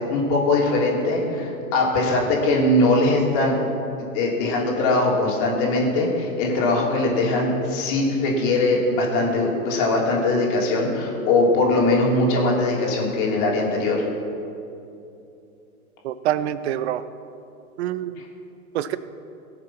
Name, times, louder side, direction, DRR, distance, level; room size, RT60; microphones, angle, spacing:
voice 1, 0.0-3.5 4.1-14.1, left 2 dB, 40° left, -3 dB, 3.3 m, -21 dB
voice 2, 16.0-17.0 17.8-18.2 18.7-19.0, right 12 dB, 45° right, 14 dB, 0.7 m, -26 dB
19.0 x 6.8 x 5.9 m, 2.7 s
hypercardioid pair, 120°, 44 cm